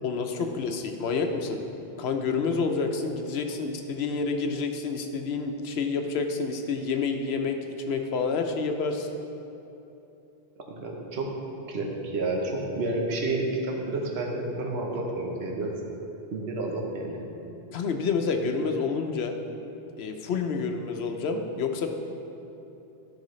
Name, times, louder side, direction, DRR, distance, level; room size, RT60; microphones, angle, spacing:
voice 1, 0.0-1.6 2.0-7.6 7.9-9.1 17.7-19.3 20.0-21.9, left 4 dB, 80° left, 4 dB, 0.9 m, -28 dB
voice 2, 10.6-11.3 11.7-15.7 16.3-17.2, right 2 dB, 80° right, 0 dB, 1.2 m, -30 dB
13.0 x 4.8 x 3.1 m, 2.9 s
omnidirectional pair, 1.1 m